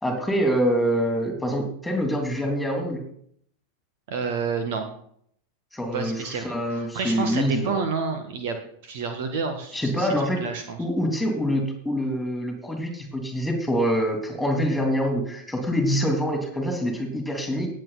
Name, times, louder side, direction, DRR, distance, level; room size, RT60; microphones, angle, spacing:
voice 1, 0.0-3.0 5.7-7.7 9.7-10.4 10.8-17.7, equal, 5° left, 3 dB, 3.3 m, -25 dB
voice 2, 4.1-4.9 5.9-6.5 6.9-8.6 8.8-10.1 10.4-10.8, right 5 dB, 50° right, 7 dB, 1.7 m, -29 dB
18.5 x 8.0 x 4.2 m, 0.66 s
figure-of-eight pair, 90°, 0 cm